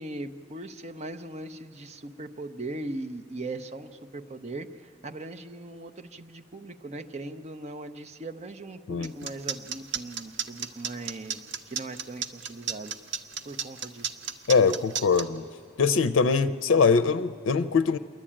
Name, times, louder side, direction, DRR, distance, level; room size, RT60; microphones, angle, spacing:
voice 1, 0.0-13.0 13.4-14.2, right 2 dB, 35° right, 5 dB, 0.7 m, -39 dB
sound 1, 9.0-15.2, right 7 dB, 65° right, 0.9 m, -32 dB
voice 2, 14.5-15.5 15.8-18.0, left 5 dB, 80° left, 10 dB, 0.5 m, -22 dB
27.5 x 11.0 x 8.7 m, 2.3 s
head